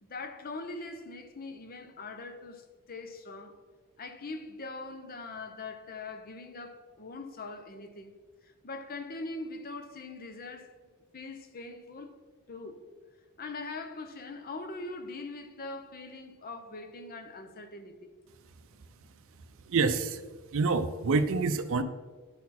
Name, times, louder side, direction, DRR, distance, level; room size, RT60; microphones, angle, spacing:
voice 1, 0.0-3.5 4.0-8.1 8.4-10.8 11.1-12.2 12.5-12.8 13.4-18.1, left 3 dB, 40° left, 0.7 m, -42 dB
voice 2, 19.7-20.2 20.5-21.8, right 4 dB, 60° right, 0.5 m, -27 dB
11.5 x 4.2 x 4.2 m
head